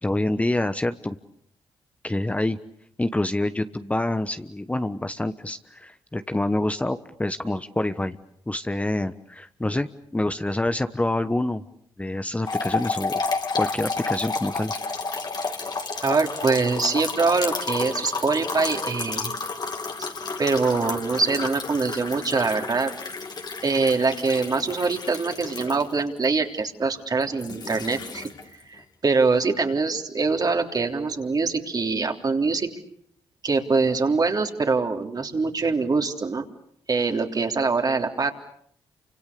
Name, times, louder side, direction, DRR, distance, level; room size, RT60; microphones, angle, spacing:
voice 1, 0.0-1.2 2.0-2.6 3.0-8.2 8.5-11.6 12.0-13.2 13.5-14.7, left 1 dB, 15° left, 10 dB, 1.2 m, -26 dB
sound 1, 12.5-26.2 27.2-28.6, left 4 dB, 45° left, 2.9 m, -31 dB
voice 2, 16.0-19.3 20.4-22.9 23.6-28.3 28.7-32.7 33.4-36.4 36.9-38.3, right 4 dB, 40° right, 4 dB, 3.5 m, -24 dB
28.5 x 25.5 x 6.8 m, 0.66 s
supercardioid pair, 60°, 10 cm